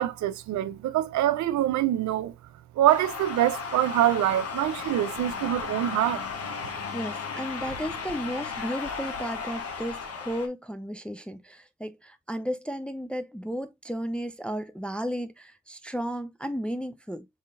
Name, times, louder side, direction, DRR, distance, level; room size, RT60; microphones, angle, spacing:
voice 1, 0.0-2.3 2.8-6.2, right 13 dB, 60° right, 0.6 m, -25 dB
sound 1, 2.9-10.5, left 5 dB, 45° left, 1.2 m, -35 dB
voice 2, 6.9-17.3, equal, 5° left, 0.4 m, -34 dB
5.2 x 3.7 x 2.4 m
hypercardioid pair, 55°, 33 cm